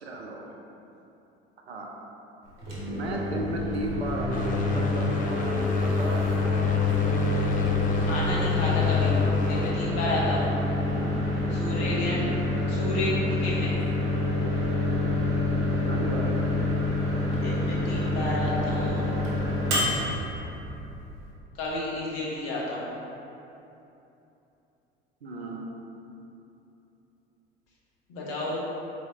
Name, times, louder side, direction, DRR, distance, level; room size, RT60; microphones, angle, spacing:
voice 1, 0.0-0.5 1.7-1.9 2.8-6.7 10.9-11.2 12.0-12.4 15.8-16.4 25.2-25.7, right 1 dB, 85° right, 0 dB, 0.5 m, -35 dB
Microwave oven, 2.5-21.3, left 1 dB, 60° right, 1.2 m, -27 dB
sound 1, 4.3-9.7, left 6 dB, 25° left, 0.4 m, -28 dB
voice 2, 8.0-9.1 9.5-10.5 11.5-12.2 12.7-13.7 17.3-19.0 21.5-22.8 28.1-28.6, left 1 dB, 55° left, -5 dB, 1.1 m, -31 dB
4.5 x 3.1 x 2.8 m, 2.9 s
figure-of-eight pair, 65°, 31 cm